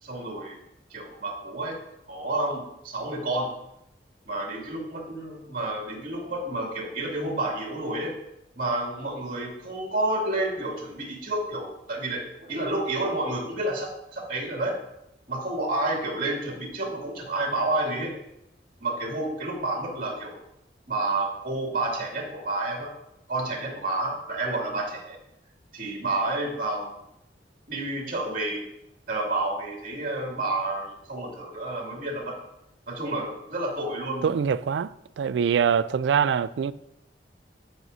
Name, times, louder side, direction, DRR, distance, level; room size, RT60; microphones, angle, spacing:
voice 1, 0.0-0.6 0.9-1.8 2.1-3.5 4.3-8.1 8.6-14.8 15.3-18.2 18.8-20.4 20.9-22.9 23.3-25.2 25.7-26.9 27.7-28.6 29.1-32.4 32.9-34.3, right 2 dB, 55° right, 2.6 m, -30 dB
voice 2, 34.2-36.7, right 7 dB, 70° right, 0.3 m, -24 dB
13.5 x 6.1 x 2.8 m
head